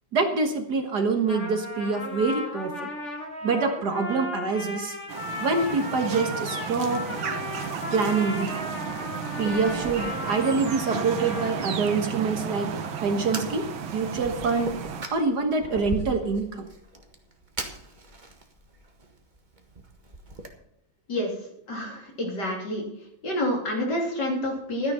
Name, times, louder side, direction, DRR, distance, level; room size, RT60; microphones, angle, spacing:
voice 1, 0.1-2.9 3.4-5.0 5.4-7.0 7.9-9.0 9.4-12.7 13.0-13.7 13.9-14.8 15.1-16.7, right 4 dB, 55° right, 5 dB, 1.9 m, -26 dB
Trumpet, 1.1-12.0, left 1 dB, 35° left, 2.8 m, -36 dB
sound 1, 5.1-15.1, right 6 dB, 80° right, 2.0 m, -33 dB
Fire, 7.6-20.5, right 2 dB, 25° right, 1.5 m, -41 dB
voice 2, 21.7-22.8 23.2-24.9, left 1 dB, 55° left, 0 dB, 3.7 m, -28 dB
12.5 x 10.0 x 5.6 m, 0.79 s
omnidirectional pair, 2.2 m